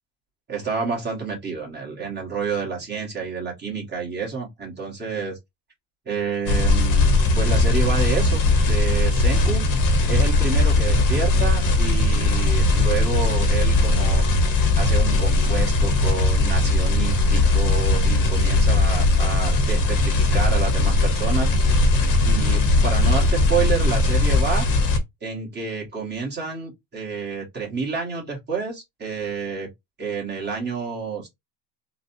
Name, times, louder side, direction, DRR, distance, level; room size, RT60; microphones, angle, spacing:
voice 1, 0.5-5.4 6.0-9.6 10.1-14.2 14.7-21.5 22.2-24.7 25.2-29.7 30.0-31.3, right 5 dB, 20° right, 1.6 m, -29 dB
sound 1, 6.5-25.0, left 2 dB, 40° left, 1.1 m, -19 dB
3.9 x 2.4 x 2.7 m
cardioid pair, 145°, 48 cm